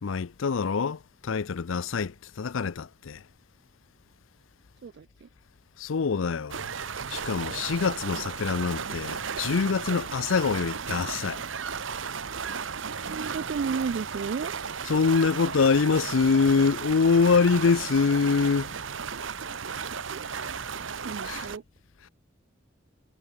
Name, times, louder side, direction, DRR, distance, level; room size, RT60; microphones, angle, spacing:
voice 1, 0.0-3.2 5.8-6.7 7.1-11.4 14.9-18.7 21.2-21.5, left 5 dB, 85° left, 0.5 m, -25 dB
voice 2, 4.8-5.3 13.0-14.5 20.1-20.5 21.0-21.6, right 5 dB, 55° right, 0.4 m, -33 dB
sound 1, 6.5-21.6, right 6 dB, 75° right, 1.1 m, -35 dB
head